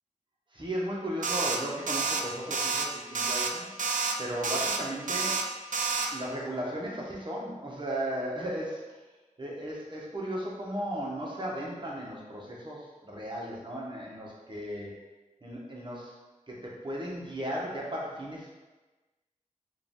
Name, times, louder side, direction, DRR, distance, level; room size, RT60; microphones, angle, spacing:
voice 1, 0.5-3.7 4.2-5.4 6.1-9.0 9.4-14.9 15.4-16.1 16.5-18.6, equal, 40° right, -4 dB, 1.1 m, -36 dB
sound 1, 1.2-1.6 1.9-2.2 2.5-2.9 3.1-3.5 3.8-4.2 4.4-4.8 5.1-5.4 5.7-6.1, right 4 dB, 75° right, 0.4 m, -29 dB
4.8 x 2.6 x 3.6 m, 1.2 s
wide cardioid pair, 65°, 13 cm